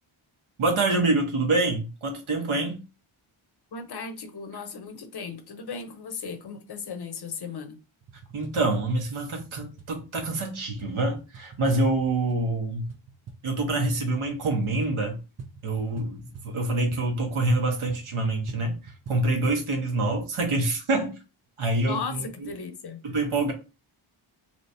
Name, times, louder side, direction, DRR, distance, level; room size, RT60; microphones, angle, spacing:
voice 1, 0.6-2.8 8.3-12.9 13.4-15.2 15.6-21.2 21.6-22.5 23.0-23.5, right 2 dB, 75° right, 1.1 m, -26 dB
voice 2, 3.7-7.8 21.8-23.0, left 5 dB, 55° left, 0.6 m, -36 dB
sound 1, 8.0-19.7, right 5 dB, 35° right, 0.4 m, -45 dB
3.2 x 3.0 x 2.7 m
wide cardioid pair, 175°, 49 cm